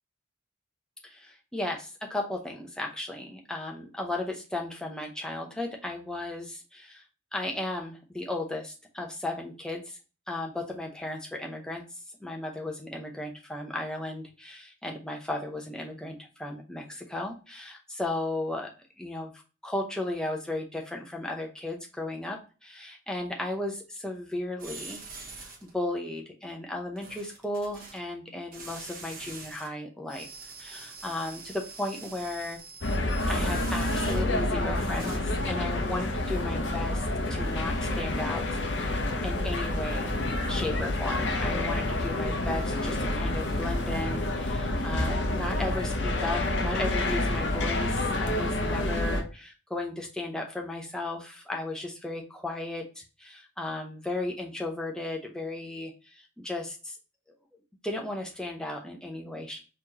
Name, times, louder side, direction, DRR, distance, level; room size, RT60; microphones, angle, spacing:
voice 1, 1.0-7.0 7.3-10.0 10.3-11.8 12.2-18.7 19.0-19.3 19.6-25.0 25.3-30.3 30.6-32.6 33.3-38.4 38.7-40.1 40.5-57.0 57.8-59.6, left 2 dB, 5° left, 1 dB, 0.7 m, -35 dB
sound 1, 24.6-25.7 27.0-28.0 28.5-29.7 30.1-34.4 34.7-35.2, right 4 dB, 45° right, 1.0 m, -44 dB
sound 2, 32.8-49.2, left 1 dB, 60° left, 0.7 m, -28 dB
4.1 x 3.1 x 2.8 m, 0.33 s
head